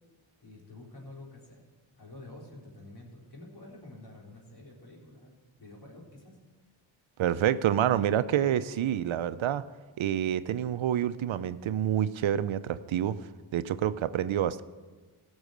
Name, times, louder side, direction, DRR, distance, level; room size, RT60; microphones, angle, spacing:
voice 1, 0.4-1.7 2.0-6.4, left 2 dB, 50° left, -2 dB, 4.1 m, -49 dB
voice 2, 7.2-9.6 10.0-14.6, right 10 dB, 70° right, 14 dB, 0.6 m, -28 dB
16.5 x 6.4 x 6.7 m, 1.3 s
cardioid pair, 60°, 49 cm